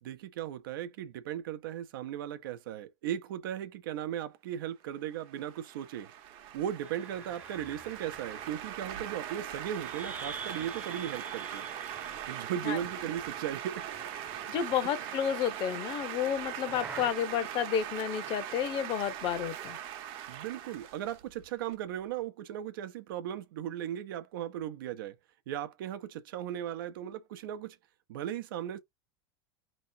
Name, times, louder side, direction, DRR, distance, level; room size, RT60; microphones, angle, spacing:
voice 1, 0.0-6.1 6.5-11.7 12.3-13.9 20.3-25.1 25.5-27.8 28.1-28.8, right 10 dB, 75° right, 0.7 m, -37 dB
sound 1, 5.1-21.7, right 10 dB, 50° right, 0.9 m, -41 dB
sound 2, 6.8-13.5 13.8-15.2 16.0-17.1, right 3 dB, 15° right, 0.7 m, -48 dB
voice 2, 14.5-19.8, left 9 dB, 45° left, 0.9 m, -31 dB
4.4 x 3.1 x 2.7 m
supercardioid pair, 110°, 11 cm